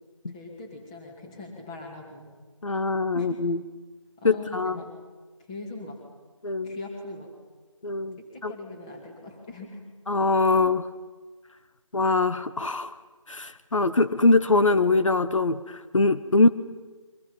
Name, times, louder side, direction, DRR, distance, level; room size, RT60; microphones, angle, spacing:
voice 1, 0.3-2.3 3.1-3.3 4.2-4.9 5.5-6.0 6.6-7.3 8.2-9.8 16.3-16.4, left 2 dB, 10° left, 1 dB, 2.4 m, -41 dB
voice 2, 2.6-3.6 4.2-4.8 6.4-6.8 7.8-8.5 10.1-10.9 11.9-12.9 13.3-16.5, left 3 dB, 70° left, 11 dB, 1.1 m, -23 dB
29.5 x 24.0 x 5.6 m, 1.4 s
figure-of-eight pair, 170°, 17 cm